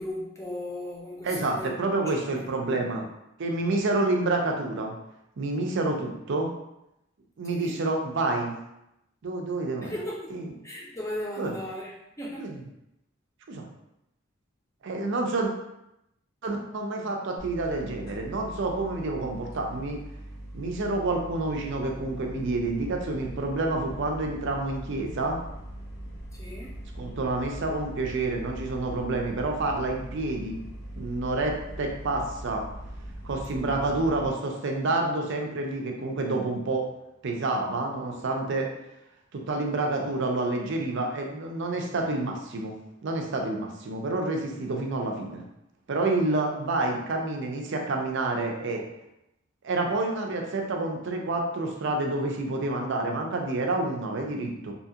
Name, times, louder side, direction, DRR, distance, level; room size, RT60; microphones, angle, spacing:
voice 1, 0.0-1.7 2.0-2.2 2.7-2.9 6.3-6.4 7.5-7.8 9.8-10.4 10.6-12.5 26.3-26.8, left 1 dB, 15° left, -4 dB, 0.6 m, -37 dB
voice 2, 1.2-3.0 3.4-4.9 5.4-6.5 7.4-8.6 9.2-9.9 10.3-10.5 11.4-11.5 12.4-12.6 13.5-13.7 14.8-15.5 16.4-20.0 20.5-25.4 27.0-30.6 31.0-32.6 33.2-36.9 37.2-38.7 39.3-42.8 43.0-45.4 45.9-48.8 49.6-54.7, right 2 dB, 60° right, 1 dB, 0.5 m, -28 dB
sound 1, 17.4-34.3, right 1 dB, 55° left, 1.0 m, -41 dB
2.7 x 2.4 x 2.7 m, 0.85 s
head